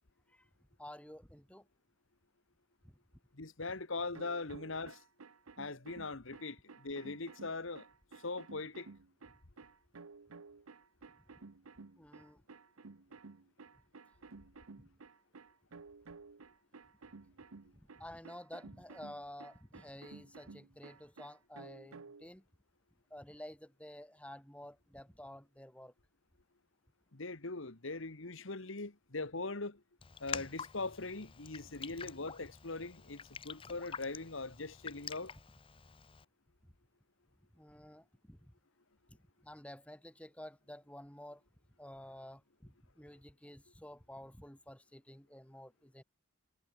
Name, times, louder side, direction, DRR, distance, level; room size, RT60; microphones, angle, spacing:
voice 1, 0.8-1.7 2.8-3.0 12.0-12.4 14.8-14.9 17.7-22.4 23.1-25.9 37.5-38.5 39.1-39.2 39.4-41.4 41.8-46.0, left 1 dB, 5° left, 2.2 m, -51 dB
voice 2, 3.3-5.0 5.6-7.9 8.1-8.9 27.1-29.8 30.2-35.3, left 3 dB, 70° left, 1.7 m, -41 dB
sound 1, 4.1-22.3, right 4 dB, 90° right, 0.9 m, -54 dB
Raindrop, 30.0-36.2, left 6 dB, 25° left, 0.6 m, -47 dB
head